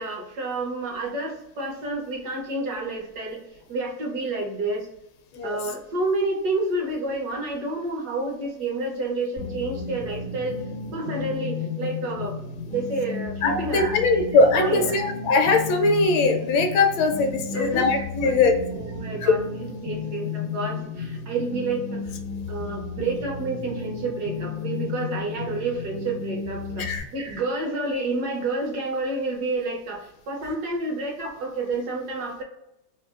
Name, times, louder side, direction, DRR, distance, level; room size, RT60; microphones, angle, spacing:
voice 1, 0.0-3.4 3.7-4.9 5.4-10.6 10.9-12.4 12.6-15.1 17.5-18.4 18.7-22.1 22.5-32.4, right 2 dB, 65° right, 0 dB, 1.1 m, -29 dB
sound 1, 9.4-27.0, left 4 dB, 60° left, 0.7 m, -33 dB
voice 2, 13.4-18.5 19.2-19.3 26.8-27.0, left 3 dB, 80° left, 5 dB, 1.3 m, -21 dB
3.7 x 2.7 x 2.3 m, 0.85 s
omnidirectional pair, 2.1 m